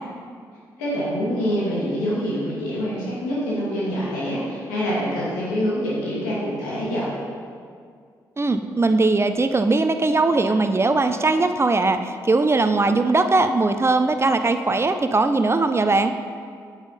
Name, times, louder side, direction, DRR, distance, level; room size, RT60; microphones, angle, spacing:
voice 1, 0.8-7.1, equal, 85° left, -7 dB, 2.4 m, -25 dB
voice 2, 8.4-16.2, right 3 dB, 25° right, 8 dB, 0.6 m, -20 dB
8.7 x 7.4 x 4.1 m, 2.1 s
hypercardioid pair, 40°, 9 cm